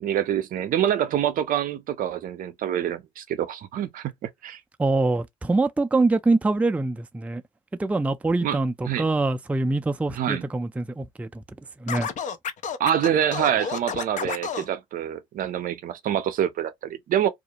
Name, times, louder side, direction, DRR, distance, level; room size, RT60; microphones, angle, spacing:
voice 1, 0.0-4.1 4.4-4.6 8.4-8.6 8.9-9.1 10.1-10.4 12.8-17.3, right 10 dB, 60° right, 0.6 m, -26 dB
voice 2, 4.8-7.4 7.8-11.4 11.8-12.1, right 2 dB, 10° right, 0.4 m, -24 dB
Scratching (performance technique), 11.9-14.7, left 7 dB, 50° left, 0.5 m, -30 dB
2.4 x 2.1 x 2.8 m
hypercardioid pair, 55°, 16 cm